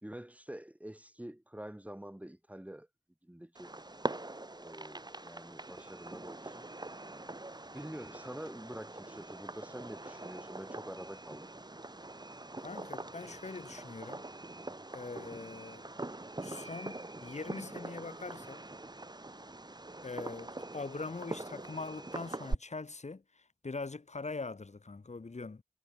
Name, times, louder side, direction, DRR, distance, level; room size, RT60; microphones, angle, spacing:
voice 1, 0.0-2.9 3.2-3.8 4.6-6.7 7.7-11.5, right 1 dB, 10° right, 1.6 m, -46 dB
Fireworks, 3.5-22.5, right 2 dB, 25° right, 2.2 m, -43 dB
voice 2, 12.6-14.3 14.9-15.9 16.4-18.6 20.0-25.6, left 3 dB, 45° left, 1.5 m, -42 dB
wide cardioid pair, 75°, 16 cm